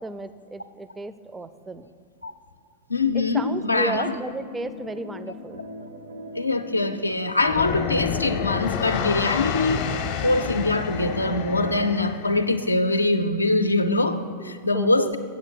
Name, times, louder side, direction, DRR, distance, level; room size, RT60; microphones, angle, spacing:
voice 1, 0.0-1.9 3.1-5.6 14.4-15.2, right 3 dB, 10° right, 12 dB, 0.4 m, -34 dB
voice 2, 2.9-4.1 6.3-9.8 10.2-15.2, left 2 dB, 80° left, 8 dB, 0.5 m, -23 dB
sound 1, 4.2-8.6 9.0-9.1 9.8-11.9, left 2 dB, 75° right, 0.8 m, -41 dB
sound 2, 7.4-12.5, left 7 dB, 45° left, 0.7 m, -29 dB
8.3 x 6.3 x 6.7 m, 2.2 s
figure-of-eight pair, 90°, 0 cm